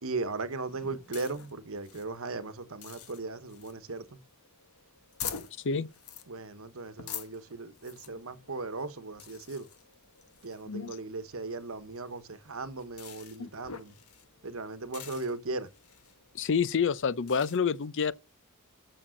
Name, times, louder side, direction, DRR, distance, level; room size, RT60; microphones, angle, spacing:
voice 1, 0.0-4.2 6.3-9.7 10.4-14.0 14.4-15.7, right 3 dB, 65° right, 1.2 m, -37 dB
sound 1, 0.7-17.6, left 8 dB, 85° left, 1.5 m, -47 dB
voice 2, 10.6-11.0 13.4-13.5 16.3-18.1, left 6 dB, 60° left, 0.6 m, -28 dB
8.7 x 6.9 x 6.4 m
head